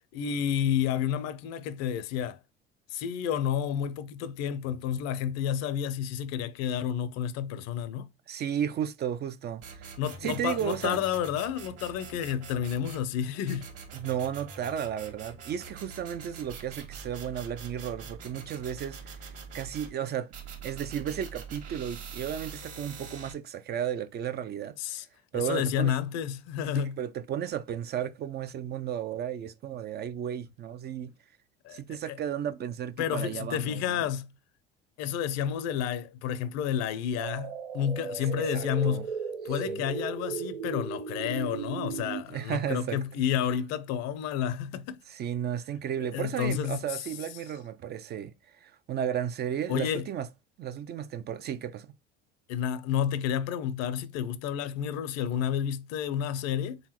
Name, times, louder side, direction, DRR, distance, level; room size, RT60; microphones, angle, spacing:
voice 1, 0.1-2.4 2.9-8.1 10.0-13.7 24.8-25.0 25.3-27.0 31.6-32.2 33.0-34.3 35.0-39.1 39.4-45.0 46.1-47.0 49.7-50.1 52.5-56.8, left 9 dB, 55° left, 0.7 m, -30 dB
voice 2, 8.3-9.9 10.2-11.1 13.9-19.3 19.5-20.3 20.6-24.8 25.3-25.9 26.7-31.1 31.7-34.1 38.5-39.1 39.4-39.8 42.3-43.0 45.1-50.3 50.6-51.9, right 9 dB, 35° right, 0.4 m, -34 dB
sound 1, 9.6-13.1 13.5-19.9 20.3-23.3, right 5 dB, 50° right, 1.6 m, -44 dB
sound 2, 37.2-42.2, right 6 dB, 80° right, 0.8 m, -36 dB
4.0 x 3.7 x 2.9 m
hypercardioid pair, 70°, 31 cm